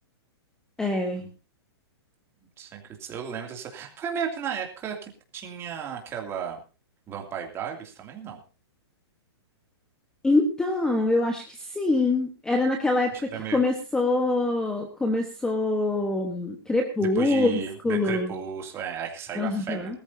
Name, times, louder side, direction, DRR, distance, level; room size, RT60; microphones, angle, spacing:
voice 1, 0.8-1.2 10.2-18.3 19.4-20.0, left 2 dB, 5° left, 5 dB, 1.1 m, -25 dB
voice 2, 2.6-6.6 7.1-8.4 13.1-13.6 17.2-20.0, right 7 dB, 15° right, 2 dB, 2.5 m, -34 dB
21.5 x 13.5 x 2.7 m, 0.32 s
hypercardioid pair, 160°, 14 cm